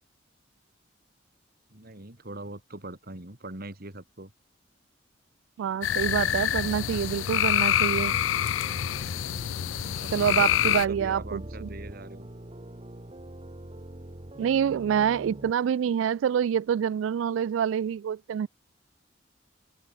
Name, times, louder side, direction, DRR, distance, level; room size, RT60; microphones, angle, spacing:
voice 1, 1.7-4.3 9.9-12.3, right 2 dB, 50° right, 3.7 m, -42 dB
voice 2, 5.6-8.1 10.1-11.7 14.4-18.5, right 8 dB, 85° right, 0.3 m, -26 dB
sound 1, 5.8-10.9, left 11 dB, 85° left, 0.4 m, -26 dB
sound 2, 5.9-15.5, right 1 dB, 30° right, 1.6 m, -43 dB
head